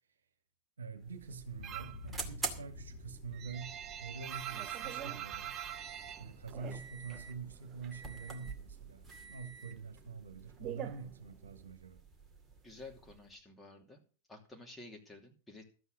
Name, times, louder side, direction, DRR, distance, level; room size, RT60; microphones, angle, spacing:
voice 1, 0.8-3.7 4.0-5.6 6.2-12.0, right 5 dB, 70° right, 1.6 m, -46 dB
sound 1, 0.9-13.4, right 3 dB, 10° right, 2.3 m, -48 dB
Boom, 1.5-5.8, left 3 dB, 45° left, 4.3 m, -52 dB
sound 2, 1.6-2.1 2.4-7.3 7.6-8.6 8.9-11.7, right 11 dB, 35° right, 0.6 m, -44 dB
voice 2, 12.6-14.0 14.3-15.6, left 2 dB, 10° left, 2.8 m, -52 dB
13.0 x 8.2 x 6.4 m
figure-of-eight pair, 90°, 0 cm